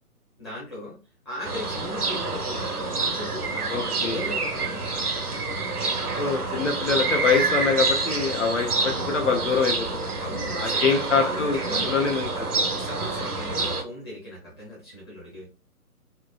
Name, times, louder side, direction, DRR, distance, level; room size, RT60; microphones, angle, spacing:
voice 1, 0.4-1.0 1.2-5.1 8.7-8.9 10.2-11.9 12.3-15.5, left 1 dB, 15° left, -7 dB, 0.8 m, -38 dB
sound 1, 1.4-13.8, right 3 dB, 75° right, 0.9 m, -27 dB
voice 2, 3.7-4.2 6.2-10.1 10.6-12.7, left 5 dB, 55° left, 3 dB, 0.6 m, -25 dB
4.2 x 2.0 x 2.3 m, 0.33 s
figure-of-eight pair, 135°, 45 cm